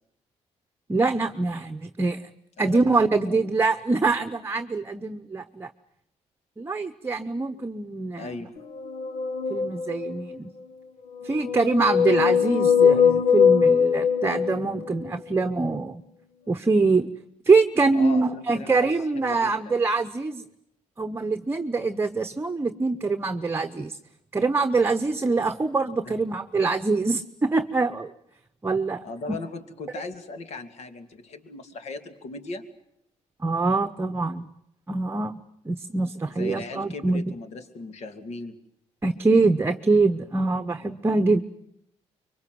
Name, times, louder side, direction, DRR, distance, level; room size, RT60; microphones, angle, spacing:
voice 1, 0.9-2.2 2.6-5.7 6.6-8.3 9.5-10.5 11.2-16.0 16.5-17.1 17.4-20.4 21.0-24.0 24.3-28.1 28.6-29.0 33.4-34.4 34.9-35.4 35.6-37.2 39.0-41.4, right 3 dB, 20° right, 8 dB, 1.0 m, -24 dB
voice 2, 2.7-3.4 8.2-8.6 17.9-19.8 26.0-26.1 29.0-32.7 36.4-38.6, left 3 dB, 65° left, 9 dB, 2.7 m, -38 dB
sound 1, 8.7-10.4 11.2-15.1, left 7 dB, 90° left, 1.3 m, -21 dB
25.0 x 24.0 x 7.8 m, 0.79 s
cardioid pair, 110°, 12 cm